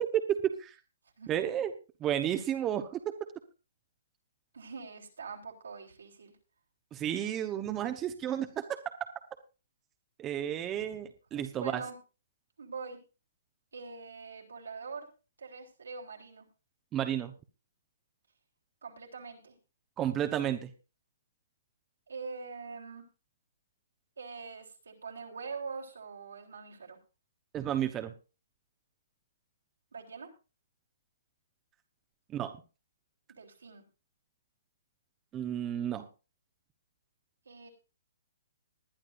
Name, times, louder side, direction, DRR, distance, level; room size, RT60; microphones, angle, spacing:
voice 1, 0.3-0.8 1.3-1.7 2.0-3.0 6.9-8.8 10.2-11.8 16.9-17.3 20.0-20.7 27.5-28.1 32.3-32.6 35.3-36.1, right 10 dB, 20° right, 7 dB, 1.0 m, -32 dB
voice 2, 4.5-6.3 11.3-12.0 12.6-13.0 13.7-15.1 15.4-16.5 18.8-19.5 22.1-23.0 24.2-27.0 29.9-30.3 33.3-33.8 37.5-37.7, right 5 dB, 85° right, 0 dB, 3.7 m, -43 dB
20.5 x 10.5 x 2.6 m, 0.32 s
hypercardioid pair, 140°, 0 cm